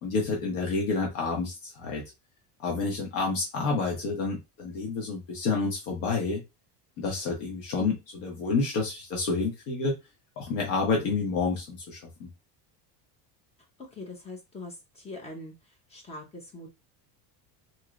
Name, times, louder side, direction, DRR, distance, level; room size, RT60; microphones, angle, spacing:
voice 1, 0.0-2.0 2.6-6.4 7.0-9.9 10.4-12.3, left 4 dB, 60° left, -1 dB, 1.1 m, -29 dB
voice 2, 13.9-15.5 15.9-16.7, left 2 dB, 15° left, 1 dB, 0.7 m, -42 dB
3.1 x 2.9 x 2.4 m, 0.24 s
cardioid pair, 165°, 46 cm